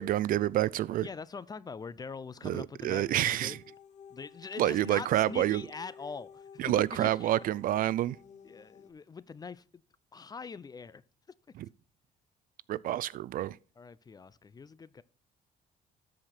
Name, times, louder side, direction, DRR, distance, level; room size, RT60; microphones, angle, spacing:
voice 1, 0.0-1.1 2.4-3.6 4.6-5.6 6.6-8.2 11.6-11.7 12.7-13.6, right 13 dB, 55° right, 0.4 m, -28 dB
voice 2, 1.0-3.6 4.1-7.3 8.4-9.6 10.1-11.0 13.8-15.0, left 5 dB, 25° left, 0.4 m, -43 dB
sound 1, 2.8-8.9, left 7 dB, 45° left, 1.1 m, -53 dB
13.0 x 5.0 x 4.4 m
cardioid pair, 110°, 17 cm